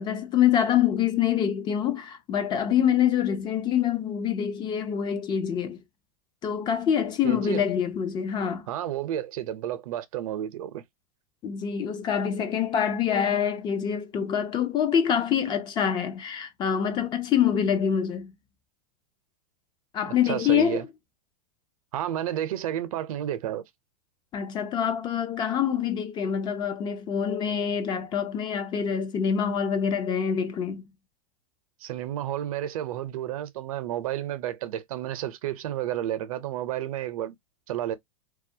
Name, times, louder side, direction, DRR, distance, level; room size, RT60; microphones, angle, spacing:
voice 1, 0.0-5.8 6.4-8.7 11.4-18.3 19.9-20.9 24.3-30.8, left 8 dB, 25° left, 0.4 m, -25 dB
voice 2, 7.2-7.6 8.7-10.8 20.0-20.8 21.9-23.6 31.8-37.3 37.7-38.0, right 12 dB, 75° right, 0.6 m, -31 dB
2.3 x 2.1 x 2.6 m
supercardioid pair, 130°, 18 cm